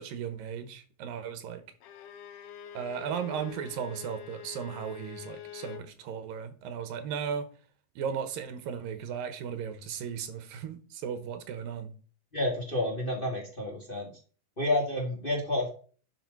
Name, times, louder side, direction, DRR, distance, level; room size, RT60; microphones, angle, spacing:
voice 1, 0.0-1.6 2.7-7.5 8.0-11.9, right 7 dB, 85° right, 3.0 m, -36 dB
Bowed string instrument, 1.8-5.9, left 11 dB, 75° left, 1.4 m, -45 dB
voice 2, 12.3-14.1 14.6-15.7, left 1 dB, 20° left, 2.0 m, -30 dB
11.0 x 5.6 x 5.5 m
omnidirectional pair, 4.0 m